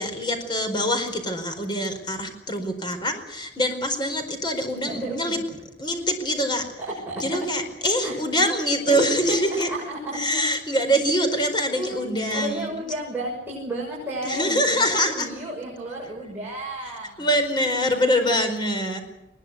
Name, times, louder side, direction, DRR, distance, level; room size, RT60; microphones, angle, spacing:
voice 1, 0.0-5.4 5.8-6.6 7.2-9.7 10.1-12.7 14.2-15.3 17.2-19.0, equal, 25° left, 5 dB, 4.7 m, -24 dB
voice 2, 4.9-5.4 6.9-7.2 8.0-8.1 8.9-10.4 11.7-12.1 12.3-17.3, right 1 dB, 10° right, -5 dB, 6.9 m, -32 dB
21.5 x 21.0 x 8.3 m, 0.96 s
head